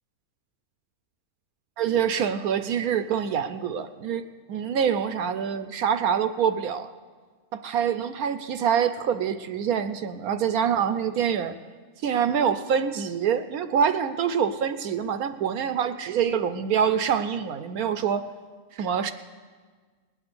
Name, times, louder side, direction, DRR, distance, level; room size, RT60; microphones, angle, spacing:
voice 1, 1.8-6.9 7.5-11.5 12.0-18.2 18.7-19.1, right 8 dB, 70° right, 10 dB, 0.9 m, -25 dB
20.0 x 8.7 x 6.8 m, 1.5 s
omnidirectional pair, 1.8 m